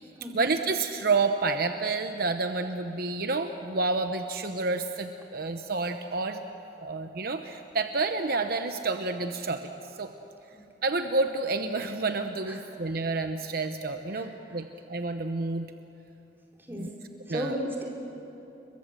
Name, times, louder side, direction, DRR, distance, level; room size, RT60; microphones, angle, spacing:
voice 1, 0.3-6.4 6.8-10.1 10.8-15.7 16.7-16.9 17.3-17.6, right 3 dB, 60° right, 7 dB, 0.9 m, -29 dB
voice 2, 17.3-17.8, equal, 15° right, -1 dB, 4.3 m, -33 dB
30.0 x 22.5 x 7.6 m, 2.9 s
head